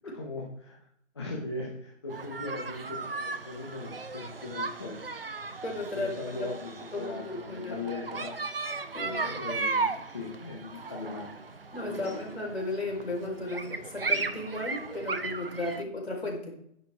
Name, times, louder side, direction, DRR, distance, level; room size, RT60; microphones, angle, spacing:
voice 1, 0.1-0.8 1.1-5.0 5.9-8.4 9.0-11.3 11.8-12.1, left 3 dB, 20° left, -4 dB, 1.6 m, -39 dB
sound 1, 2.1-15.8, right 4 dB, 50° right, 0.9 m, -36 dB
voice 2, 5.6-6.5 6.9-7.8 8.9-9.2 11.7-16.6, left 2 dB, 55° left, 0 dB, 5.0 m, -35 dB
11.0 x 11.0 x 3.7 m, 0.71 s
figure-of-eight pair, 170°, 38 cm